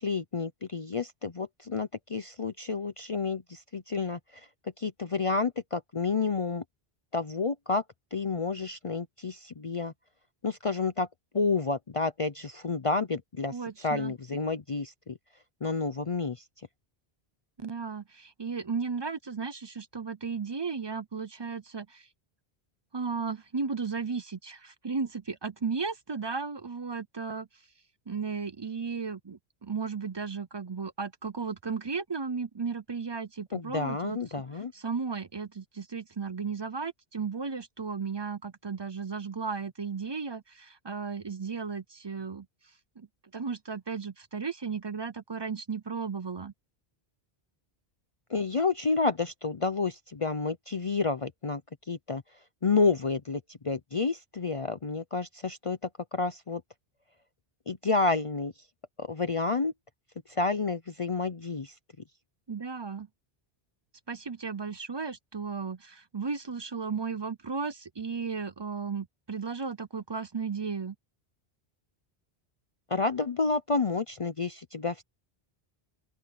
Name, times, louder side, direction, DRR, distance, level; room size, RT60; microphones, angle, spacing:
voice 1, 0.0-4.5 4.8-6.6 7.1-7.8 8.1-9.9 10.4-11.1 11.3-13.5 13.8-15.2 15.6-16.4 33.5-34.7 48.3-51.6 51.9-52.2 52.6-56.6 57.7-58.5 59.0-59.7 60.3-61.7 72.9-75.0, left 4 dB, 35° left, 0.6 m, -30 dB
voice 2, 13.5-14.1 17.6-22.1 22.9-27.5 28.1-34.4 34.7-42.5 43.0-43.1 43.3-46.5 62.5-63.1 64.1-71.0, right 5 dB, 35° right, 0.5 m, -35 dB
open air
omnidirectional pair, 1.1 m